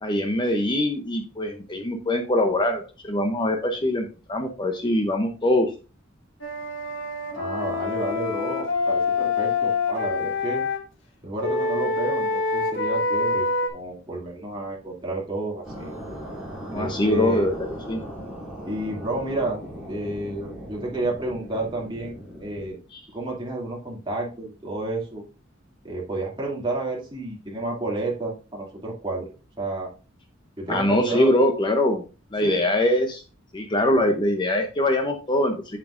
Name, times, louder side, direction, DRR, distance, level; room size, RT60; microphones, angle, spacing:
voice 1, 0.0-5.7 16.7-18.0 30.7-32.0 32.3-33.2 33.5-35.8, left 1 dB, 25° left, 4 dB, 0.7 m, -23 dB
Wind instrument woodwind instrument, 6.4-10.8 11.4-13.7, left 4 dB, 70° left, 1.6 m, -26 dB
voice 2, 7.3-10.6 11.2-15.9 16.7-17.5 18.7-19.6 19.9-22.8 23.1-25.2 25.8-29.3 29.6-29.9 30.6-31.3 32.4-32.6, right 2 dB, 25° right, -3 dB, 2.5 m, -31 dB
sound 1, 15.6-22.7, equal, 5° right, 2.8 m, -38 dB
8.3 x 7.1 x 2.5 m, 0.33 s
head